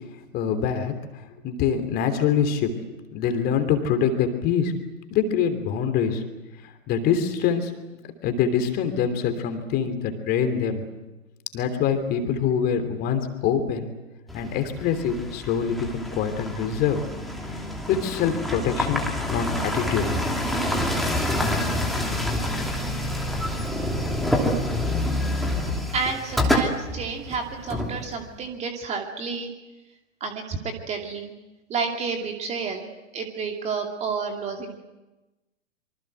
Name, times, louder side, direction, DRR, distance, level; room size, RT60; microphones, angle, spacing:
voice 1, 0.3-0.9 1.4-2.7 3.1-4.7 5.1-6.2 6.9-7.7 8.2-10.8 11.5-13.9 14.3-17.0 17.9-20.1 20.8-20.9, left 7 dB, 25° left, 7 dB, 3.2 m, -24 dB
sound 1, 14.3-28.4, left 1 dB, ahead, 2.9 m, -27 dB
voice 2, 25.9-29.5 30.2-31.3 31.7-32.9 33.1-34.8, right 5 dB, 15° right, 3 dB, 2.6 m, -30 dB
26.0 x 24.5 x 8.0 m, 1.1 s
figure-of-eight pair, 115°, 39 cm